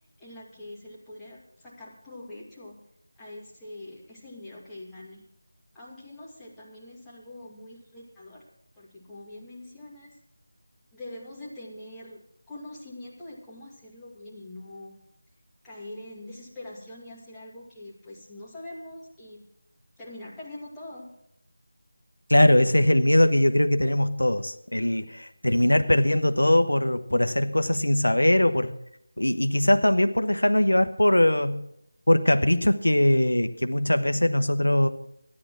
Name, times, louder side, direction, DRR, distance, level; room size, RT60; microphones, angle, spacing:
voice 1, 0.2-2.8 3.2-5.2 5.7-8.4 8.8-10.2 10.9-15.0 15.6-19.4 20.0-21.1, left 1 dB, 5° left, -8 dB, 2.1 m, -43 dB
voice 2, 22.3-28.7 29.2-31.7 32.1-34.9, left 1 dB, 85° left, 9 dB, 0.9 m, -21 dB
13.0 x 9.7 x 6.1 m, 0.77 s
figure-of-eight pair, 165°, 0 cm